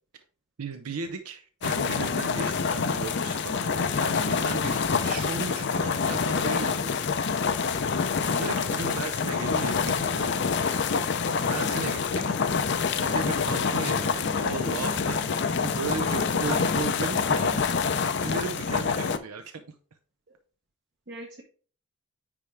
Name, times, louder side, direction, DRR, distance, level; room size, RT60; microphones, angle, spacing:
voice 1, 0.6-7.1 7.9-10.3 11.5-12.4 13.0-15.2 15.6-19.7, right 4 dB, 90° right, 7 dB, 0.6 m, -36 dB
sound 1, 1.6-19.2, left 5 dB, 50° left, 0.5 m, -26 dB
sound 2, 7.5-17.6, right 1 dB, 15° right, 0.4 m, -45 dB
voice 2, 16.4-17.0 18.2-18.3 21.1-21.4, right 3 dB, 50° right, 1 dB, 1.0 m, -40 dB
9.8 x 3.5 x 3.3 m, 0.40 s
head